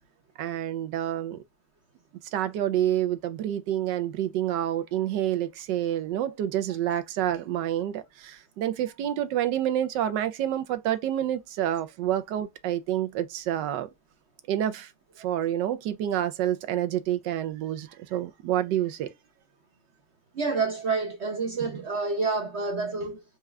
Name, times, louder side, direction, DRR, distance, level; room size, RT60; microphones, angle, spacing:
voice 1, 0.4-1.4 2.3-13.9 14.5-14.9 15.2-19.1, right 11 dB, 75° right, 1.2 m, -28 dB
voice 2, 20.3-23.2, right 4 dB, 55° right, 0.8 m, -28 dB
4.6 x 2.4 x 3.2 m
omnidirectional pair, 2.0 m